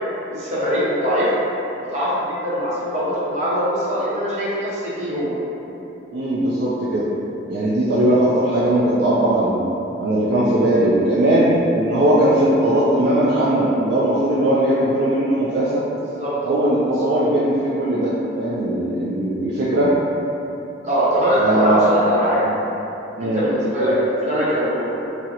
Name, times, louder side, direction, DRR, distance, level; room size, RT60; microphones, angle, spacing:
voice 1, 0.3-1.3 1.9-5.4 16.2-16.3 20.8-22.4 23.2-24.0 24.2-24.9, equal, 35° right, -9 dB, 0.7 m, -21 dB
voice 2, 6.1-7.0 7.5-9.6 10.0-15.8 16.4-19.9 21.4-21.9 22.5-22.6 23.2-23.4, right 1 dB, 60° right, -8 dB, 0.3 m, -19 dB
3.6 x 2.0 x 2.8 m, 3.0 s
head